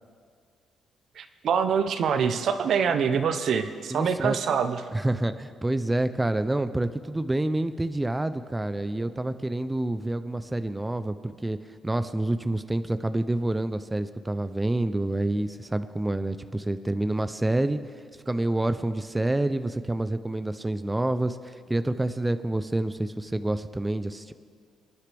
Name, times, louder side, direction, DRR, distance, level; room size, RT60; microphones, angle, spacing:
voice 1, 1.2-4.8, right 6 dB, 65° right, 9 dB, 0.8 m, -25 dB
voice 2, 3.9-4.4 4.9-11.6 11.8-17.8 18.3-24.3, right 1 dB, 15° right, 11 dB, 0.5 m, -28 dB
28.0 x 9.8 x 3.4 m, 2.1 s
cardioid pair, 90°, 0 cm